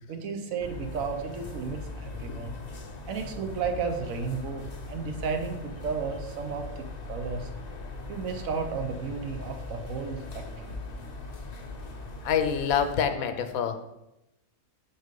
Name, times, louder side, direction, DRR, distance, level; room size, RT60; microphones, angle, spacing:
voice 1, 0.1-2.5 3.1-7.5 8.1-10.8, right 5 dB, 75° right, 5 dB, 1.1 m, -33 dB
sound 1, 0.6-13.1, left 3 dB, 40° left, 0.6 m, -40 dB
voice 2, 12.2-13.8, left 7 dB, 80° left, 8 dB, 1.1 m, -26 dB
5.1 x 4.0 x 5.1 m, 0.91 s
omnidirectional pair, 1.5 m